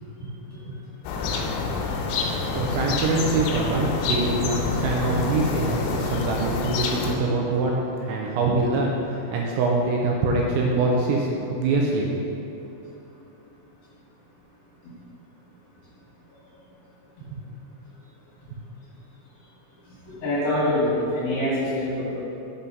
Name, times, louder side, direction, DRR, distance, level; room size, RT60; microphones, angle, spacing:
sound 1, 1.0-7.2, left 4 dB, 85° left, 3.3 m, -27 dB
voice 1, 2.5-11.3 11.6-12.1, right 3 dB, 85° right, -2 dB, 2.7 m, -24 dB
voice 2, 20.1-22.2, left 1 dB, 55° left, -12 dB, 3.3 m, -25 dB
8.2 x 4.2 x 5.2 m, 2.9 s
omnidirectional pair, 6.0 m